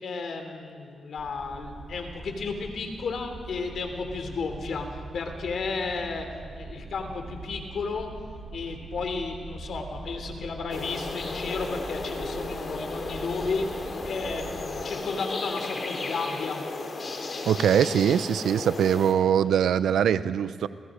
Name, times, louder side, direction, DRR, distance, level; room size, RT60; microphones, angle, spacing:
voice 1, 0.0-8.2 8.5-13.7 14.0-16.7 19.7-19.8, left 4 dB, 70° left, 5 dB, 3.3 m, -33 dB
sound 1, 1.2-14.8, right 3 dB, 60° right, 2.9 m, -43 dB
sound 2, 10.7-19.1, left 3 dB, 50° left, 3.5 m, -34 dB
voice 2, 17.4-20.7, right 8 dB, 80° right, 15 dB, 0.7 m, -22 dB
28.0 x 22.0 x 5.1 m, 2.1 s
supercardioid pair, 55°, 0 cm